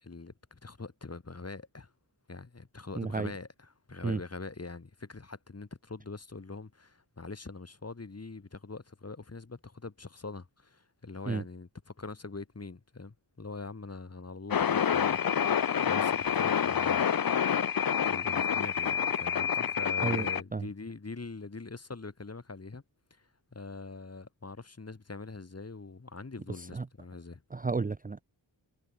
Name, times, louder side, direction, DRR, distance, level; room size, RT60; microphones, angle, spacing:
voice 1, 0.0-1.9 2.3-17.0 18.0-22.8 23.2-27.4, left 3 dB, 30° left, 3.8 m, -43 dB
voice 2, 3.0-3.3 4.0-4.2 11.3-11.4 20.0-20.3 20.5-20.6 26.7-26.8 27.5-28.2, right 4 dB, 20° right, 0.6 m, -31 dB
sound 1, 14.5-20.4, left 8 dB, 50° left, 0.8 m, -28 dB
wide cardioid pair, 115°, 46 cm